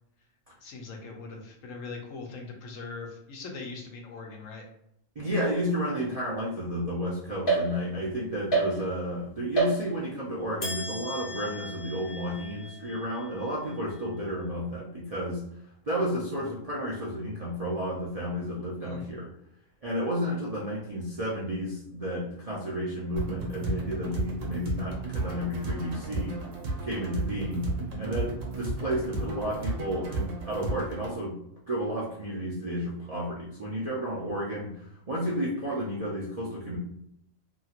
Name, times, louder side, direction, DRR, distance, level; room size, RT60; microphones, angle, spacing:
voice 1, 0.6-4.6 18.8-19.0, left 3 dB, 75° left, 1 dB, 1.0 m, -41 dB
voice 2, 5.2-15.4 15.9-19.3 19.8-26.4 26.8-27.7 28.0-31.4 31.7-34.8 35.1-36.8, equal, 50° right, -6 dB, 0.4 m, -32 dB
sound 1, 7.5-8.1 8.5-9.2 9.6-10.2 10.6-14.1, right 3 dB, 45° left, 1.1 m, -32 dB
sound 2, 23.2-31.2, right 2 dB, 70° right, 1.2 m, -34 dB
2.9 x 2.8 x 2.4 m, 0.75 s
omnidirectional pair, 1.4 m